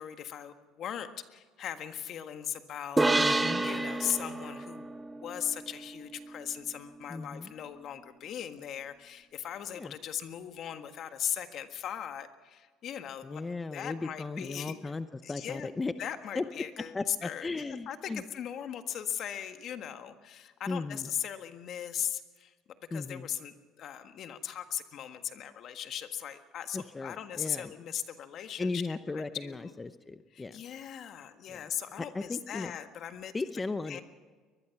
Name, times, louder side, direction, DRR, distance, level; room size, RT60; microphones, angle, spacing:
voice 1, 0.0-4.8 5.2-13.4 13.7-14.9 15.2-15.7 16.0-22.5 22.9-29.8 30.3-33.3 33.9-34.0, left 9 dB, 55° left, 8 dB, 1.6 m, -38 dB
sound 1, 3.0-6.4, right 2 dB, 15° right, 1.4 m, -30 dB
voice 2, 3.2-3.6 7.1-7.5 9.8-9.9 13.2-15.9 16.3-16.4 16.9-18.2 20.7-21.1 22.9-23.3 26.7-27.7 28.6-30.6 31.5-31.6 32.1-32.7 33.3-34.0, left 3 dB, 20° left, 11 dB, 0.8 m, -36 dB
23.0 x 20.5 x 6.0 m, 1.5 s
supercardioid pair, 90°, 0 cm